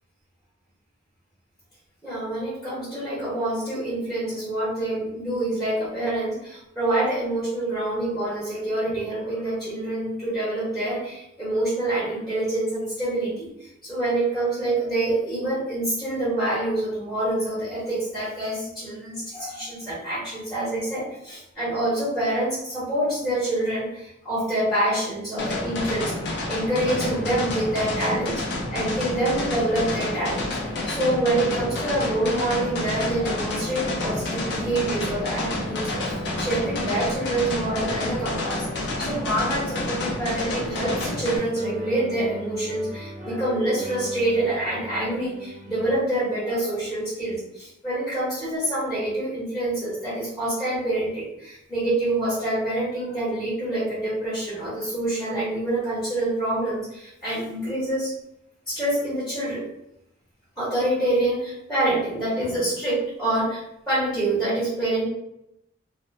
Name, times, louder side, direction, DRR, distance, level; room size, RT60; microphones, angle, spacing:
voice 1, 2.0-30.6 30.8-38.7 39.0-58.1 58.7-59.6 60.6-65.0, right 1 dB, ahead, -11 dB, 0.9 m, -26 dB
sound 1, 25.4-41.4, left 2 dB, 60° left, 0.5 m, -29 dB
sound 2, 26.9-41.3 41.6-46.0, equal, 40° right, 0.4 m, -40 dB
2.5 x 2.1 x 2.5 m, 0.83 s
head